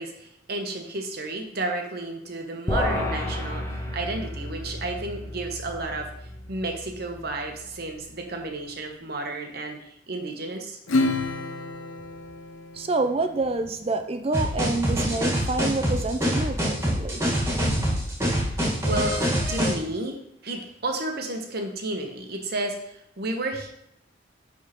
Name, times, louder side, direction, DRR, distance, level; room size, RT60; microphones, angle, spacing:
voice 1, 0.0-3.6 3.9-10.8 11.1-11.2 18.8-19.2 19.5-23.7, right 2 dB, 50° right, 3 dB, 0.9 m, -32 dB
sound 1, 2.7-8.2, left 1 dB, 15° left, 0.6 m, -32 dB
Acoustic guitar / Strum, 10.9-13.8, left 2 dB, 75° left, 0.6 m, -29 dB
voice 2, 12.7-17.2, right 3 dB, 30° right, 7 dB, 0.4 m, -27 dB
sound 2, 14.3-19.7, equal, 15° right, 1.6 m, -25 dB
9.5 x 3.6 x 3.0 m, 0.77 s
head